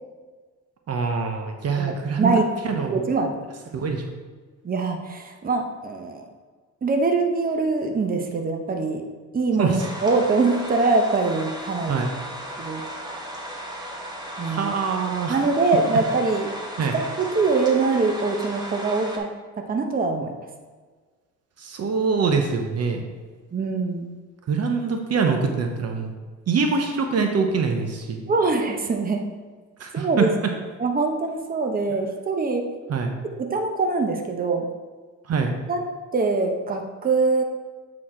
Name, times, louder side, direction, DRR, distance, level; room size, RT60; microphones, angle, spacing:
voice 1, 0.9-2.3 2.6-3.0 3.7-4.0 9.6-9.9 11.9-12.1 14.4-15.4 16.8-17.0 21.6-23.1 24.5-26.2 26.5-28.2 29.8-30.3 32.9-33.1 35.3-35.5, right 5 dB, 55° right, 4 dB, 0.9 m, -24 dB
voice 2, 2.9-3.4 4.6-6.3 6.8-9.0 9.3-12.1 12.6-12.8 14.4-14.7 15.3-16.5 16.8-19.3 19.7-20.3 23.5-24.1 28.3-29.3 29.9-30.3 30.8-32.7 33.4-34.7 35.7-35.8 36.1-37.4, right 3 dB, 30° right, 4 dB, 0.9 m, -23 dB
sound 1, 9.8-19.2, right 1 dB, 15° right, 1.5 m, -35 dB
8.3 x 4.2 x 4.4 m, 1.4 s
cardioid pair, 90°, 30 cm